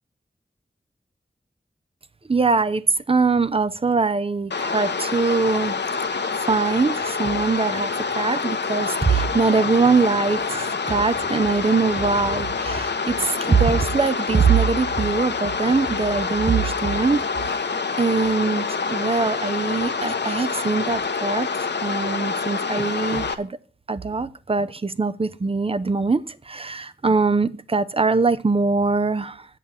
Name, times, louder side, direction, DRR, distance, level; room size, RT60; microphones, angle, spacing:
voice 1, 2.3-5.8 6.4-17.5 18.0-21.5 21.8-23.5 23.9-29.5, right 4 dB, 30° right, 14 dB, 0.6 m, -22 dB
sound 1, 4.5-23.3, left 4 dB, 80° left, 0.9 m, -26 dB
8.4 x 6.9 x 7.4 m, 0.42 s
wide cardioid pair, 80°, 18 cm